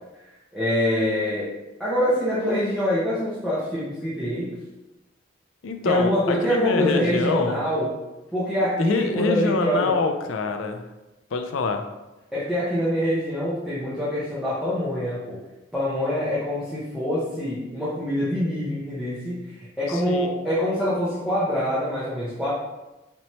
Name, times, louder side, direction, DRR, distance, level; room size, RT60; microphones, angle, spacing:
voice 1, 0.5-1.5 1.8-4.5 5.8-7.9 8.3-10.0 12.3-15.4 15.7-22.5, equal, ahead, -11 dB, 0.7 m, -25 dB
voice 2, 5.6-7.6 8.8-10.8 11.3-11.8 19.9-20.3, left 4 dB, 90° left, 6 dB, 0.4 m, -25 dB
4.3 x 3.0 x 2.9 m, 1.0 s
head